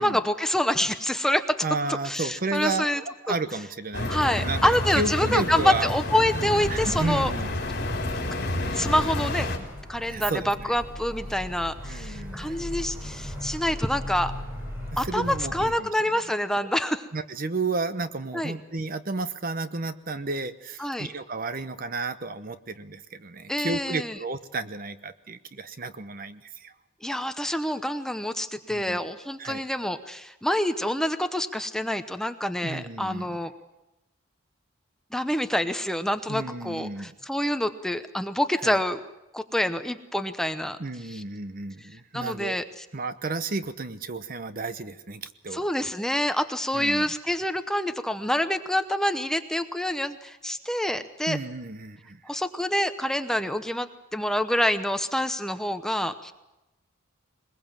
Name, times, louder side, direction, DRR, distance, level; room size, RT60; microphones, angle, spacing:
voice 1, 0.0-1.6 2.0-3.0 3.3-3.4 4.1-7.3 8.7-9.5 9.9-14.3 15.0-17.1 18.3-18.5 20.8-21.1 23.5-24.2 27.0-33.5 35.1-39.0 39.3-40.8 41.1-41.2 42.1-42.6 45.5-51.4 52.2-56.3, left 1 dB, 5° left, 8 dB, 0.8 m, -27 dB
voice 2, 1.6-5.9 6.7-7.5 10.0-10.7 11.9-12.6 15.0-16.2 17.1-26.7 28.7-29.0 29.4-29.6 32.6-33.4 36.3-37.1 38.6-38.8 40.8-42.6 42.9-45.6 46.7-47.1 51.3-52.2, right 3 dB, 45° right, 12 dB, 0.9 m, -32 dB
sound 1, 3.9-9.6, left 1 dB, 55° left, 3.7 m, -29 dB
sound 2, 6.6-15.7, left 1 dB, 15° right, 7.9 m, -38 dB
21.5 x 21.5 x 7.4 m, 0.95 s
head